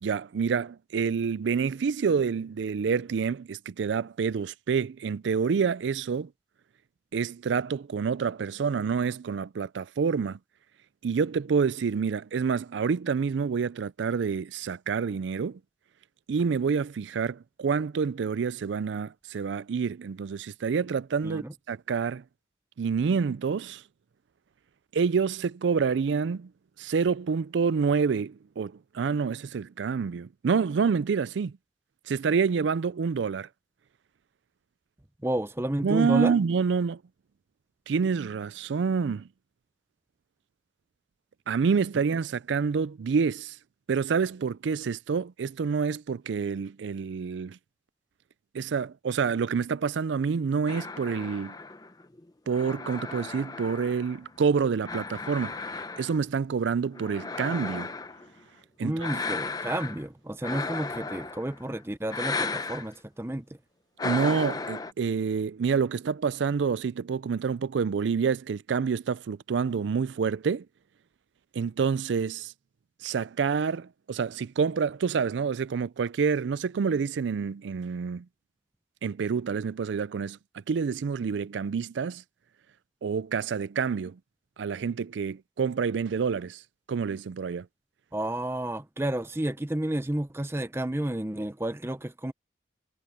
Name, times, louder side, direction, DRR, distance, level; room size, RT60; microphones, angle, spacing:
voice 1, 0.0-6.3 7.1-10.4 11.0-15.6 16.3-22.2 22.8-23.8 24.9-26.5 26.8-31.5 32.1-33.5 35.8-37.0 37.9-39.3 41.5-43.6 43.9-47.6 48.5-51.6 52.5-55.5 56.0-57.9 58.8-59.2 64.0-70.7 71.5-72.5 73.0-78.3 79.0-80.4 80.7-82.2 83.0-84.2 84.6-86.6 86.9-87.7, right 5 dB, 80° right, 0.4 m, -27 dB
voice 2, 35.2-36.3 58.8-63.5 88.1-92.3, right 1 dB, 15° right, 0.7 m, -31 dB
sound 1, 50.7-54.4 54.9-56.3 56.9-58.3 59.0-60.0 60.4-61.6 62.1-62.9 64.0-64.9, left 4 dB, 20° left, 0.7 m, -35 dB
head